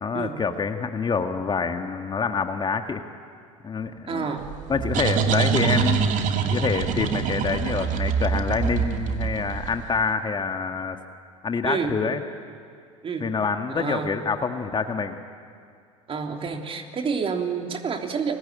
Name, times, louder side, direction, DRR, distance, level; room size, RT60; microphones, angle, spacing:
voice 1, 0.0-3.0 3.6-4.3 4.7-6.1 6.5-11.0 11.4-12.2 13.2-15.2, left 5 dB, 25° left, 6 dB, 1.7 m, -26 dB
voice 2, 4.1-4.5 11.6-12.0 13.0-13.3 13.7-14.2 16.1-18.4, right 5 dB, 30° right, 3 dB, 3.3 m, -29 dB
sound 1, 4.4-10.0, right 6 dB, 45° right, 2.3 m, -24 dB
30.0 x 21.5 x 8.9 m, 2.3 s
hypercardioid pair, 70°, 17 cm